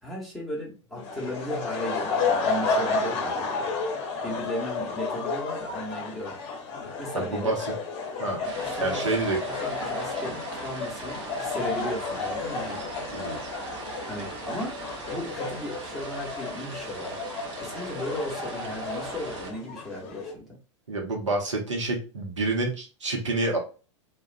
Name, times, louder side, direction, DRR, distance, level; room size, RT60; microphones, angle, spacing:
voice 1, 0.0-3.7 4.2-6.4 7.0-7.6 8.7-12.8 14.1-14.8 15.1-20.6, equal, ahead, -3 dB, 0.9 m, -36 dB
sound 1, 1.0-20.3, left 4 dB, 35° left, 0.7 m, -32 dB
voice 2, 7.1-7.6 8.2-8.4 8.8-9.4 13.1-13.4 17.6-17.7 20.9-23.6, right 2 dB, 75° right, 1 dB, 0.8 m, -28 dB
sound 2, 8.4-19.5, right 4 dB, 35° right, 0.6 m, -40 dB
2.3 x 2.2 x 2.4 m, 0.35 s
figure-of-eight pair, 95°, 16 cm